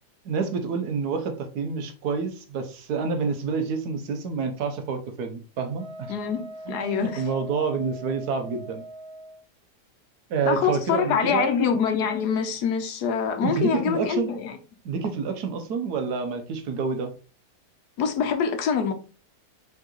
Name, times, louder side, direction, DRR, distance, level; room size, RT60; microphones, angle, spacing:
voice 1, 0.2-6.1 6.7-8.8 10.3-11.5 13.4-14.3 14.8-17.1, right 5 dB, 70° right, 1.3 m, -28 dB
Wind instrument woodwind instrument, 5.8-9.4, right 1 dB, 55° right, 0.4 m, -41 dB
voice 2, 6.1-7.3 10.5-14.6 18.0-18.9, left 6 dB, 75° left, 1.3 m, -25 dB
4.5 x 3.9 x 2.9 m
omnidirectional pair, 1.8 m